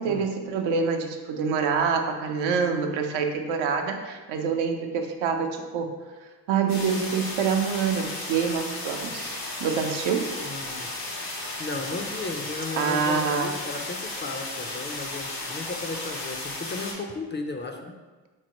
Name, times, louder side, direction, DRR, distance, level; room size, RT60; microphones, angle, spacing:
voice 1, 0.0-5.9 6.5-10.3 12.8-13.5, right 6 dB, 80° right, 4 dB, 0.6 m, -26 dB
sound 1, 6.7-16.9, left 2 dB, 90° left, 1.0 m, -34 dB
voice 2, 10.4-11.3 11.6-17.9, left 3 dB, 25° left, 4 dB, 0.4 m, -35 dB
3.7 x 3.1 x 2.9 m, 1.3 s
supercardioid pair, 50°, 46 cm